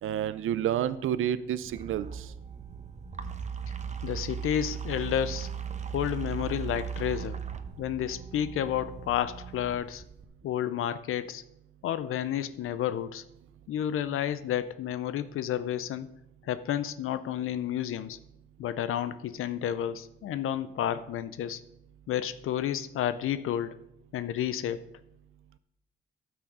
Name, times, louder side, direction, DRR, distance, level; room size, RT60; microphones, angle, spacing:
voice 1, 0.0-2.3, right 10 dB, 75° right, 15 dB, 0.5 m, -29 dB
sound 1, 1.6-10.2, right 7 dB, 35° right, 0.8 m, -38 dB
voice 2, 4.0-5.5 5.9-7.4 7.8-10.0 10.4-11.4 11.8-13.2 13.7-16.1 16.4-18.2 18.6-21.6 22.1-23.8 24.1-24.8, left 10 dB, 85° left, 13 dB, 0.5 m, -31 dB
12.5 x 6.1 x 4.8 m, 0.82 s
cardioid pair, 110°, 21 cm